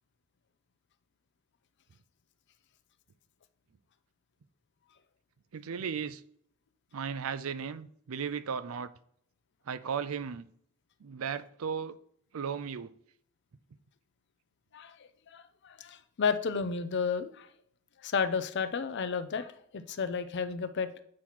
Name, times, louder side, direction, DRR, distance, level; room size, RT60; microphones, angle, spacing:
voice 1, 5.5-6.2 6.9-8.9 9.7-10.5 11.0-12.0 12.3-12.9, right 6 dB, 80° right, 0.5 m, -35 dB
voice 2, 15.3-17.5 18.0-20.9, left 5 dB, 55° left, 0.5 m, -32 dB
8.5 x 3.0 x 5.7 m
head